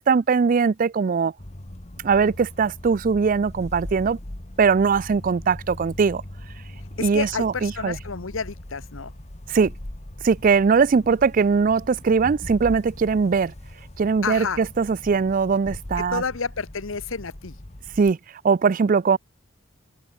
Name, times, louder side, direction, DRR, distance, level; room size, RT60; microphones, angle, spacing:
voice 1, 0.1-1.3 2.0-4.2 4.6-6.2 7.0-8.0 9.5-9.7 10.2-13.5 14.0-16.2 18.0-18.2 18.4-19.2, right 5 dB, 45° right, 0.4 m, -20 dB
sound 1, 1.4-18.1, left 1 dB, 35° left, 1.6 m, -40 dB
voice 2, 7.0-9.1 14.2-14.6 16.0-17.6, left 5 dB, 85° left, 1.1 m, -30 dB
open air
head